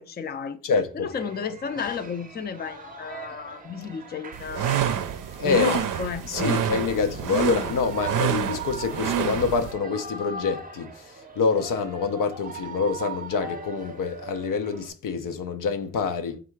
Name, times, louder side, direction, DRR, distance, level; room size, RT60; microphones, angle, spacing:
voice 1, 0.0-0.6 0.9-5.0 5.4-6.6, left 6 dB, 30° left, 0.4 m, -33 dB
voice 2, 0.6-1.1 5.4-5.8 6.2-10.9 11.4-16.4, left 5 dB, 85° left, 0.6 m, -26 dB
Shout / Cheering, 1.0-14.9, right 4 dB, 25° right, 0.6 m, -40 dB
sound 1, 4.3-9.7, right 9 dB, 80° right, 0.5 m, -28 dB
3.6 x 2.5 x 4.5 m
cardioid pair, 75°, 31 cm